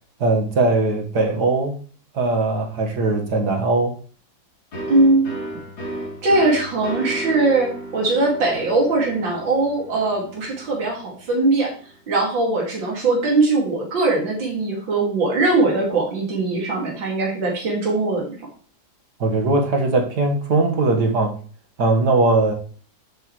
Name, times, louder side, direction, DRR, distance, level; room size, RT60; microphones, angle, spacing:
voice 1, 0.2-1.7 2.1-3.9 19.2-21.4 21.8-22.5, right 3 dB, 60° right, 2 dB, 2.2 m, -20 dB
sound 1, 4.7-12.2, right 1 dB, 90° left, 4.1 m, -35 dB
voice 2, 4.9-5.3 6.2-11.7 12.1-18.3, right 2 dB, 80° right, -2 dB, 3.2 m, -20 dB
11.0 x 8.0 x 3.3 m, 0.42 s
omnidirectional pair, 2.0 m